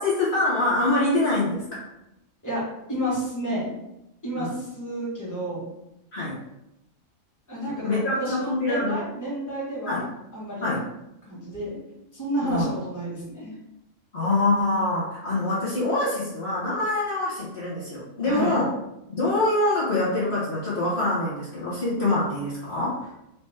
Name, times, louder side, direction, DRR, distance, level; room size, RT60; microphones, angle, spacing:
voice 1, 0.0-1.8 4.4-4.5 6.1-6.4 7.7-9.0 9.9-10.1 10.6-10.8 12.4-12.7 14.1-18.7 19.1-23.0, left 2 dB, 50° left, -9 dB, 1.5 m, -25 dB
voice 2, 2.4-3.7 4.2-5.7 7.5-10.8 11.3-11.8 12.1-13.5 18.2-18.6, equal, 15° left, -7 dB, 1.6 m, -31 dB
4.4 x 3.0 x 3.5 m, 0.87 s
omnidirectional pair, 1.4 m